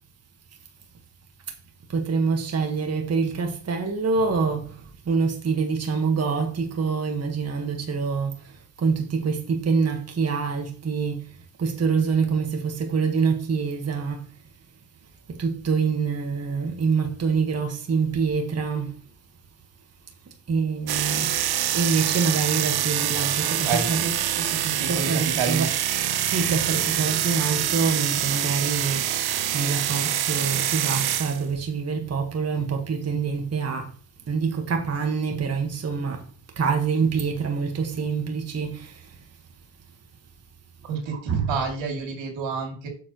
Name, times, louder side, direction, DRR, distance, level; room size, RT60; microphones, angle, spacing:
voice 1, 1.9-14.3 15.3-19.0 20.3-21.4 21.7-24.0 24.9-25.7 26.2-33.9 34.3-36.3 36.5-39.2 41.1-41.6, right 5 dB, 35° right, 1.5 m, -26 dB
sound 1, 20.9-31.4, right 11 dB, 55° right, 0.9 m, -25 dB
voice 2, 23.6-25.7 40.8-42.9, right 5 dB, 80° right, 2.8 m, -29 dB
8.7 x 7.0 x 3.0 m
cardioid pair, 110°, 44 cm